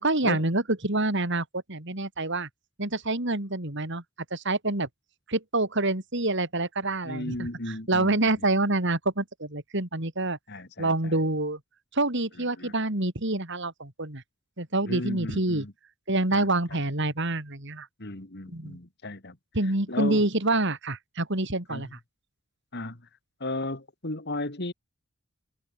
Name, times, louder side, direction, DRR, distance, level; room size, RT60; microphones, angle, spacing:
voice 1, 0.0-2.5 2.8-4.0 4.3-4.9 5.3-10.4 10.8-11.6 11.9-14.2 14.6-15.7 16.1-17.9 18.5-18.8 19.5-22.0, right 2 dB, 55° right, 3.2 m, -27 dB
voice 2, 7.0-8.2 10.5-11.2 12.6-12.7 14.9-15.7 16.3-16.8 18.0-19.4 19.9-20.3 21.7-21.9 22.7-23.0 23.4-24.7, left 2 dB, 50° left, 2.5 m, -35 dB
head